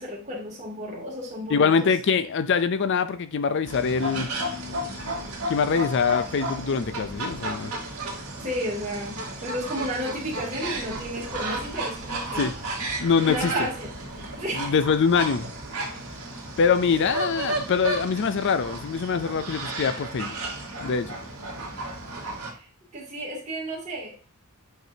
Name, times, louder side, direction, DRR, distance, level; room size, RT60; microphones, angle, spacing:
voice 1, 0.0-1.9 8.4-12.5 13.2-14.7 22.5-22.7 22.9-24.1, equal, 30° right, 2.6 m, -33 dB
voice 2, 1.5-4.3 5.5-7.7 12.4-12.5 13.0-13.7 14.5-15.5 16.6-20.3 20.8-21.1, left 5 dB, 55° left, 0.4 m, -24 dB
sound 1, 3.6-22.5, right 1 dB, 75° right, 2.4 m, -33 dB
7.9 x 4.7 x 2.7 m
head